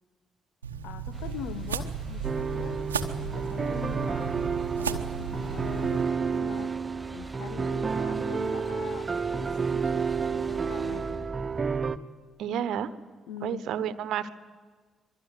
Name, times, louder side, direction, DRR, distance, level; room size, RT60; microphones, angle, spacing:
sound 1, 0.6-6.0, right 7 dB, 85° right, 1.0 m, -35 dB
voice 1, 0.8-2.9 3.2-11.3 13.3-13.7, left 9 dB, 65° left, 14 dB, 1.0 m, -43 dB
sound 2, 1.1-12.0, right 2 dB, 20° right, 0.9 m, -42 dB
sound 3, 2.2-12.0, right 5 dB, 35° right, 1.2 m, -30 dB
voice 2, 12.4-12.9 13.4-14.3, right 9 dB, 60° right, 15 dB, 1.2 m, -30 dB
24.5 x 23.0 x 9.6 m, 1.5 s
figure-of-eight pair, 40°, 0 cm